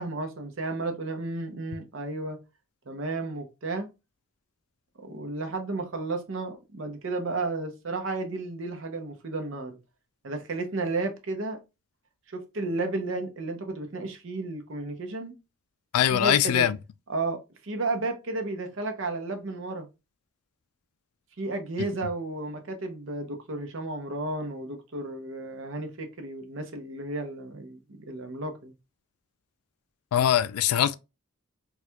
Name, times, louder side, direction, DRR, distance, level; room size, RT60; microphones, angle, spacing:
voice 1, 0.0-2.4 2.9-3.9 5.0-9.8 10.2-11.6 12.3-15.3 16.1-16.7 17.1-19.9 21.4-27.8 28.1-28.7, right 2 dB, 60° right, 0.7 m, -33 dB
voice 2, 15.9-16.8 30.1-30.9, left 10 dB, 90° left, 0.3 m, -22 dB
4.3 x 2.3 x 2.2 m
head